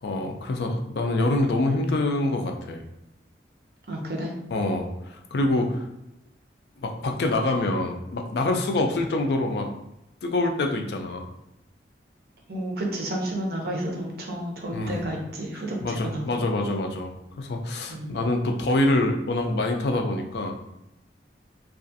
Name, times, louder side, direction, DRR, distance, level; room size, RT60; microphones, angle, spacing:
voice 1, 0.0-2.8 4.5-5.8 6.8-9.7 10.2-11.3 14.7-15.0 15.8-20.6, left 2 dB, 65° left, 3 dB, 0.4 m, -25 dB
voice 2, 3.9-4.3 8.7-8.9 12.5-16.2 17.9-18.2, right 1 dB, 60° right, 0 dB, 0.6 m, -31 dB
2.4 x 2.4 x 2.6 m, 0.87 s
head